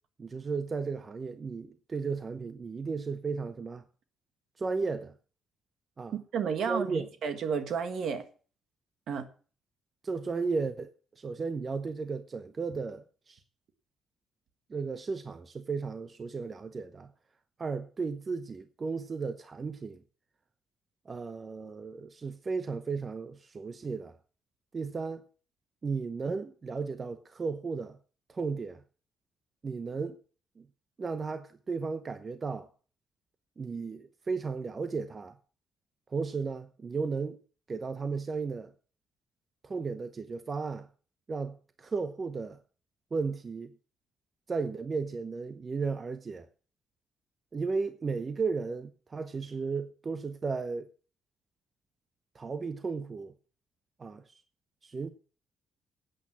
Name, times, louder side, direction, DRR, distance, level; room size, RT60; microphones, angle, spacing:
voice 1, 0.2-3.8 4.6-5.1 6.0-6.1 6.7-7.1 10.0-10.9 11.2-13.4 14.7-17.1 17.6-20.0 21.1-24.1 24.7-25.2 25.8-28.0 28.3-28.8 29.6-30.2 30.6-30.7 31.0-32.7 33.6-35.4 36.1-37.4 37.7-38.7 39.6-40.9 41.3-42.6 43.1-43.7 44.5-46.5 47.5-50.9 52.3-53.3 54.0-54.2 54.8-55.1, right 4 dB, 35° right, 0.8 m, -34 dB
voice 2, 6.1-8.2 9.1-9.3, right 6 dB, 65° right, 1.6 m, -32 dB
8.7 x 8.1 x 7.4 m
cardioid pair, 90°, 0 cm